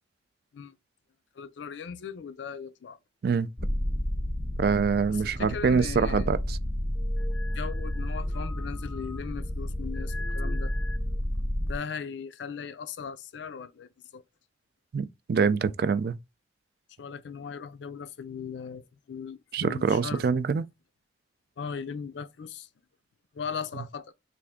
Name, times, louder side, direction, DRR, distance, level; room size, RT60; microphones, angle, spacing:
voice 1, 1.4-3.0 5.1-6.3 7.5-10.7 11.7-14.2 17.0-20.3 21.6-22.7 23.3-24.1, left 6 dB, 80° left, 0.4 m, -38 dB
sound 1, 3.6-11.8, left 1 dB, 10° left, 0.4 m, -31 dB
voice 2, 4.6-6.6 14.9-16.2 19.5-20.6, right 5 dB, 55° right, 0.3 m, -25 dB
3.4 x 2.5 x 3.5 m
head